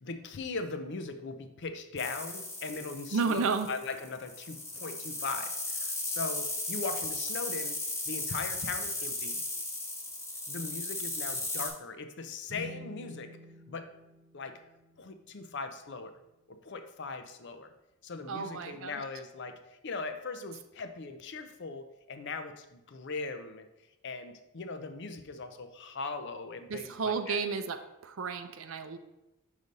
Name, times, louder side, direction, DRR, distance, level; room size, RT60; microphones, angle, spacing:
voice 1, 0.0-7.8 8.1-9.4 10.5-13.4 13.7-13.9 14.3-14.6 15.0-16.2 16.5-17.7 18.0-23.7 24.0-27.4, left 4 dB, 55° left, 8 dB, 0.5 m, -39 dB
sound 1, 2.0-11.7, left 2 dB, 15° left, 1.0 m, -36 dB
voice 2, 3.1-3.7 18.3-19.0 26.7-27.8 28.0-29.0, right 5 dB, 65° right, 7 dB, 0.5 m, -32 dB
sound 2, 12.5-16.0, left 1 dB, 30° right, 2.3 m, -50 dB
5.3 x 4.9 x 4.1 m, 0.96 s
head